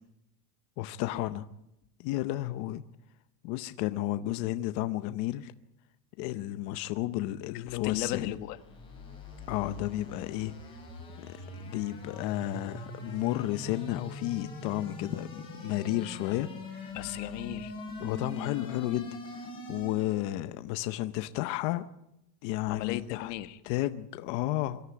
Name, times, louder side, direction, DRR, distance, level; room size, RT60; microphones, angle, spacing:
voice 1, 0.8-1.4 2.0-2.8 3.4-5.5 6.2-8.3 9.5-10.5 11.2-11.3 11.6-16.5 16.8-16.9 18.0-19.1 19.7-21.8 22.4-23.3 23.7-24.8, left 15 dB, 40° left, 10 dB, 0.7 m, -32 dB
voice 2, 7.5-8.6 16.2-16.4 16.9-17.7 22.7-23.6, left 14 dB, 75° left, 9 dB, 1.6 m, -36 dB
sound 1, 8.3-20.3, left 2 dB, 10° left, 7.6 m, -43 dB
23.5 x 13.5 x 9.4 m, 0.85 s
cardioid pair, 175°, 49 cm